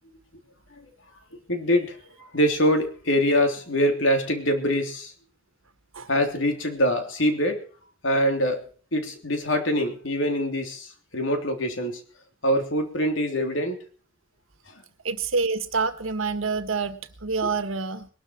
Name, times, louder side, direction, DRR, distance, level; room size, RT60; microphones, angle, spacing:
voice 1, 1.5-5.1 6.1-7.6 8.0-8.6 8.9-12.0 12.4-13.8 17.4-17.5, equal, 70° left, 5 dB, 3.3 m, -24 dB
voice 2, 15.0-18.1, right 4 dB, 80° right, 10 dB, 1.5 m, -27 dB
21.0 x 12.5 x 4.7 m, 0.42 s
head